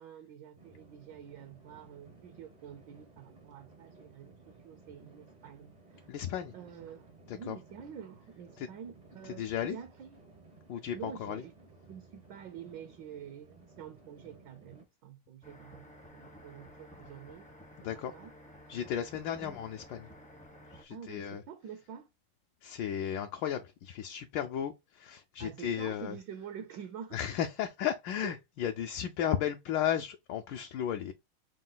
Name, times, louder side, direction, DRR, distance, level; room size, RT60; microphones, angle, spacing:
voice 1, 0.0-6.1 6.5-10.2 10.9-11.5 11.9-17.5 17.9-18.3 19.4-19.6 20.9-22.1 25.4-27.2 28.2-28.3, right 8 dB, 70° right, 1.1 m, -47 dB
sound 1, 0.6-14.9, right 3 dB, 50° right, 0.4 m, -57 dB
voice 2, 6.1-6.5 7.3-7.6 8.6-8.7 9.4-9.8 10.7-11.4 17.8-18.1 18.7-20.1 20.7-21.4 22.6-26.2 27.1-31.1, left 9 dB, 75° left, 1.1 m, -34 dB
sound 2, 15.4-20.8, equal, 10° left, 0.4 m, -53 dB
5.2 x 2.3 x 3.7 m
omnidirectional pair, 2.4 m